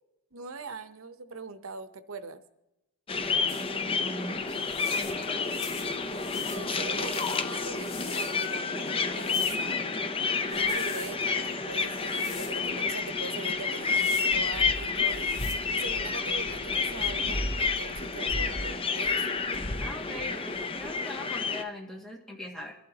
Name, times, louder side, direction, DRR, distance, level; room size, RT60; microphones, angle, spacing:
voice 1, 0.3-2.4 6.5-9.8 10.5-19.3, right 4 dB, 75° right, 11 dB, 0.9 m, -42 dB
sound 1, 3.1-21.6, left 4 dB, 25° left, 0.6 m, -29 dB
sound 2, 3.5-3.7 4.5-8.6 9.1-9.7 10.4-11.1 11.9-12.6 13.7-14.3 15.1-15.5, left 6 dB, 75° left, 2.3 m, -45 dB
voice 2, 3.5-5.4 19.8-22.8, left 1 dB, ahead, -3 dB, 2.1 m, -41 dB
23.0 x 11.5 x 2.9 m, 0.96 s
head